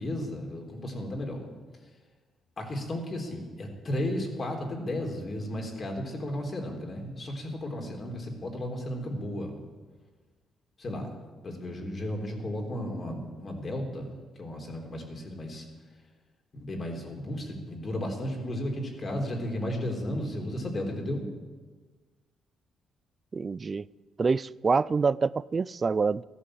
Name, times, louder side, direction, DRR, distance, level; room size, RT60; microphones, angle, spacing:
voice 1, 0.0-1.4 2.6-9.5 10.8-11.1 11.4-14.1 14.4-15.7 16.5-21.3, left 1 dB, 40° left, 2 dB, 3.6 m, -34 dB
voice 2, 23.3-23.8 24.2-26.2, right 4 dB, 35° right, 21 dB, 0.4 m, -26 dB
14.0 x 11.5 x 7.6 m, 1.4 s
cardioid pair, 90°, 0 cm